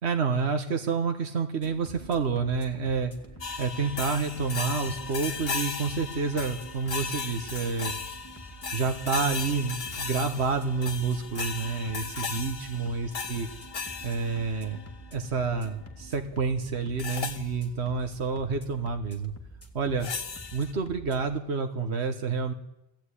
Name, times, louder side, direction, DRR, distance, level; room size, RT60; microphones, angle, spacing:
voice 1, 0.0-3.1 3.6-7.9 8.7-13.5 14.0-14.8 15.1-19.3 19.7-20.1 20.5-22.5, right 5 dB, 80° right, 6 dB, 1.6 m, -29 dB
sound 1, 1.6-21.4, right 1 dB, 15° left, 2.7 m, -47 dB
sound 2, 3.4-14.9 17.0-17.5 20.0-20.7, left 5 dB, 60° left, 1.4 m, -36 dB
20.5 x 15.5 x 10.0 m, 0.90 s
omnidirectional pair, 1.1 m